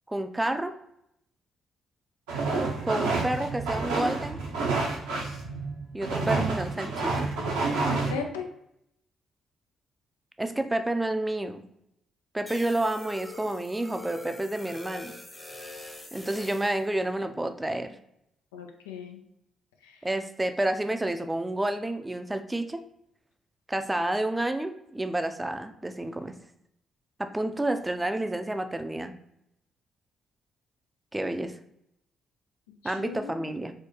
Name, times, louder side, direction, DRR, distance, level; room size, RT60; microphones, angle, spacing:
voice 1, 0.1-0.7 2.8-4.4 5.9-7.3 10.4-11.6 12.3-15.1 16.1-18.0 20.0-22.8 23.7-26.4 27.2-29.1 31.1-31.6 32.8-33.7, right 1 dB, 15° right, 7 dB, 0.4 m, -29 dB
sound 1, 2.3-8.1, right 3 dB, 80° right, 0.7 m, -29 dB
voice 2, 7.9-8.4 18.5-19.2 19.8-20.0 32.8-33.6, left 6 dB, 80° left, 3 dB, 0.4 m, -37 dB
sound 2, 12.5-16.8, left 2 dB, 10° left, 0.8 m, -44 dB
4.4 x 2.1 x 3.0 m, 0.77 s
hypercardioid pair, 40°, 0 cm